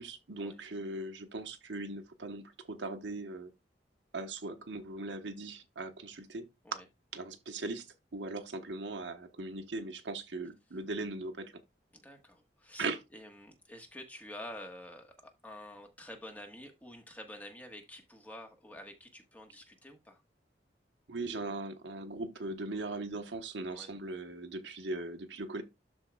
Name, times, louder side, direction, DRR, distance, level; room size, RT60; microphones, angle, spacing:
voice 1, 0.0-3.5 4.1-6.4 6.7-6.8 7.1-7.8 8.1-11.5 12.8-13.0 21.1-25.6, right 2 dB, 90° right, 1.1 m, -39 dB
voice 2, 11.9-20.2 23.7-23.9, left 1 dB, 10° left, 1.4 m, -49 dB
12.5 x 4.6 x 2.3 m
head